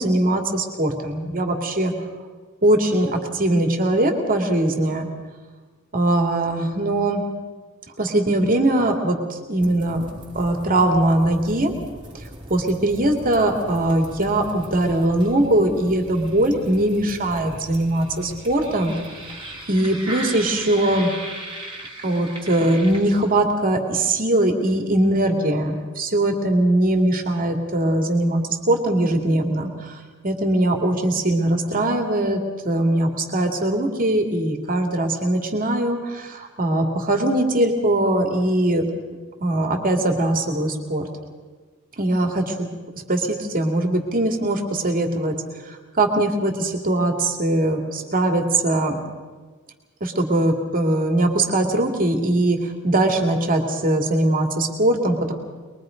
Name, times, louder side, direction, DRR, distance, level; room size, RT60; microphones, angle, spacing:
voice 1, 0.0-1.9 2.6-5.1 5.9-7.2 8.0-11.7 12.5-18.9 19.7-21.1 22.0-28.4 28.7-30.0 30.2-38.9 39.4-41.0 42.0-42.7 43.1-45.3 45.7-49.0 50.0-55.3, right 1 dB, 40° right, 3 dB, 2.6 m, -21 dB
sound 1, 9.6-23.5, right 1 dB, 25° right, 2.9 m, -38 dB
22.5 x 22.5 x 5.2 m, 1.4 s
head